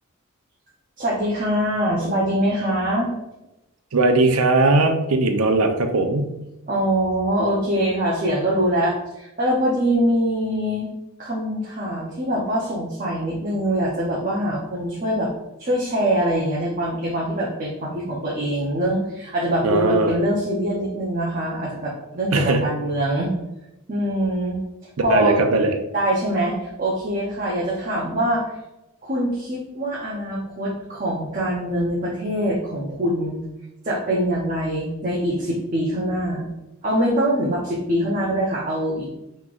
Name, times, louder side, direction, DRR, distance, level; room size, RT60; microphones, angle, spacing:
voice 1, 1.0-3.1 6.7-10.9 11.2-15.3 15.6-23.3 23.9-25.4 25.9-28.4 29.0-33.4 33.8-36.5 36.8-39.1, equal, 35° right, -6 dB, 0.8 m, -23 dB
voice 2, 3.9-6.3 19.6-20.1 22.3-22.6 25.1-25.7, right 2 dB, 85° right, 6 dB, 0.6 m, -19 dB
5.7 x 3.1 x 2.5 m, 0.92 s
head